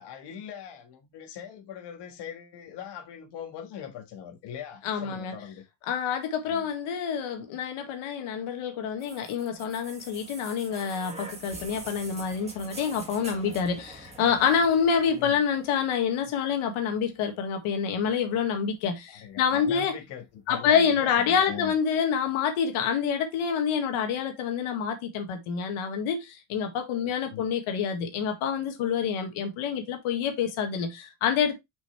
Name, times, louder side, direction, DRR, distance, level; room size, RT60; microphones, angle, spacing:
voice 1, 0.0-5.6 6.5-6.7 15.1-15.4 19.1-21.7 27.0-27.4, left 8 dB, 55° left, 1.7 m, -41 dB
voice 2, 4.8-5.3 5.9-19.9 20.5-31.5, left 7 dB, 80° left, 1.8 m, -27 dB
sound 1, 9.0-16.9 17.9-18.0, right 2 dB, 15° right, 1.6 m, -45 dB
6.0 x 5.6 x 3.1 m
cardioid pair, 180°, 49 cm